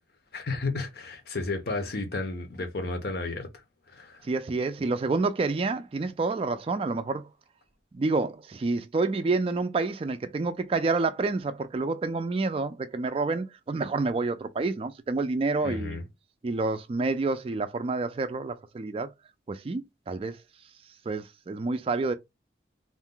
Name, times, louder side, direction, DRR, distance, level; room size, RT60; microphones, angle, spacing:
voice 1, 0.3-3.5 3.9-4.2 15.6-16.0, left 3 dB, 55° left, 0.7 m, -32 dB
voice 2, 4.2-7.3 7.9-16.0 16.4-19.1 19.5-20.4 21.1-22.1, right 3 dB, 30° right, 0.3 m, -28 dB
2.6 x 2.2 x 3.6 m
head